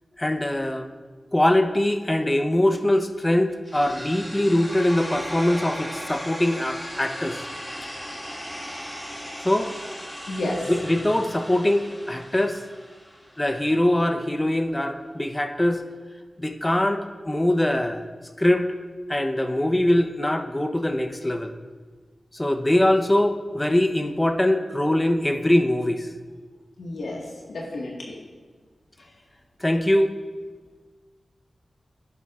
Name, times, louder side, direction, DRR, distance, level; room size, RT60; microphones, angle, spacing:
voice 1, 0.2-0.9 1.3-7.4 9.4-9.7 10.7-12.6 13.4-15.8 16.4-18.0 18.4-18.7 19.1-21.5 22.3-26.1 29.6-30.1, left 1 dB, 20° left, 6 dB, 0.8 m, -22 dB
sound 1, 3.7-13.6, equal, 5° left, 2.7 m, -37 dB
voice 2, 10.3-10.6 26.8-28.1, left 1 dB, 85° left, -3 dB, 1.7 m, -31 dB
11.5 x 9.9 x 2.5 m, 1.5 s
cardioid pair, 45°, 0 cm